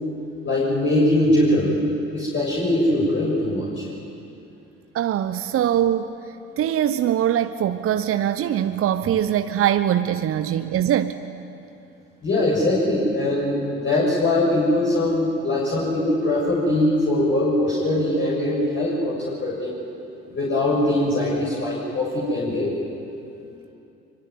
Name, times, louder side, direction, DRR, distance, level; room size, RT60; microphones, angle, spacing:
voice 1, 0.4-1.7 2.1-3.9 12.2-19.2 19.4-19.8 20.3-22.7, left 1 dB, 35° left, -5 dB, 7.1 m, -21 dB
voice 2, 4.9-6.1 6.6-11.2, right 10 dB, 45° right, 10 dB, 1.0 m, -22 dB
24.5 x 24.0 x 9.5 m, 2.7 s
figure-of-eight pair, 55°, 32 cm